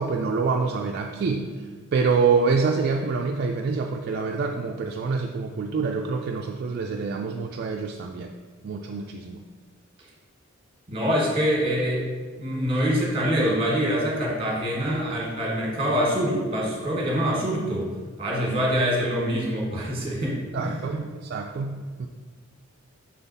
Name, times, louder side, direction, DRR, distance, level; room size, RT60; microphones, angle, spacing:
voice 1, 0.0-1.5 1.9-8.3 8.6-9.4 20.5-22.1, right 4 dB, 50° right, 2 dB, 0.3 m, -26 dB
voice 2, 10.9-12.1 12.4-17.9 18.2-21.0, equal, 25° right, -3 dB, 1.5 m, -25 dB
6.0 x 3.9 x 4.0 m, 1.5 s
head